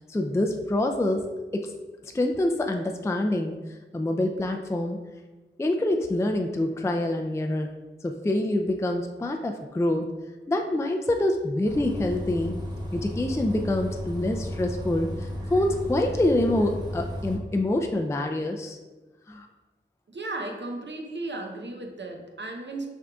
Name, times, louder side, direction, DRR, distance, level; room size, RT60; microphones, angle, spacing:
voice 1, 0.1-1.7 2.0-3.6 3.9-5.0 5.6-7.7 8.0-10.1 10.5-12.6 12.9-18.8 19.3-19.5, left 1 dB, 15° left, 3 dB, 0.3 m, -26 dB
Bus, 11.6-17.4, equal, 20° right, 0.9 m, -34 dB
voice 2, 20.1-22.9, right 2 dB, 65° right, 2 dB, 0.7 m, -35 dB
6.1 x 3.7 x 2.3 m, 1.2 s
wide cardioid pair, 55°, 20 cm